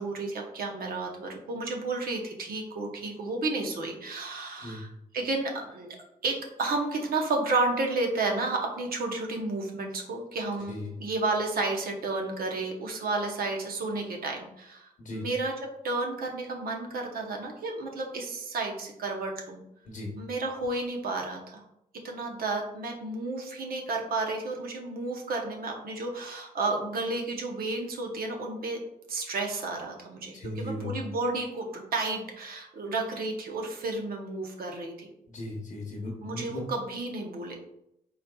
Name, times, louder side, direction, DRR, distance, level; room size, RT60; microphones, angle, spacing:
voice 1, 0.0-4.9 5.1-6.0 6.2-15.5 15.8-19.6 20.2-21.6 22.0-28.8 29.1-35.1 36.2-37.5, right 3 dB, 85° right, 1 dB, 0.8 m, -32 dB
voice 2, 30.3-30.9 35.3-36.6, left 1 dB, 65° left, -1 dB, 0.8 m, -37 dB
4.1 x 4.0 x 2.2 m, 0.80 s
cardioid pair, 95°, 15 cm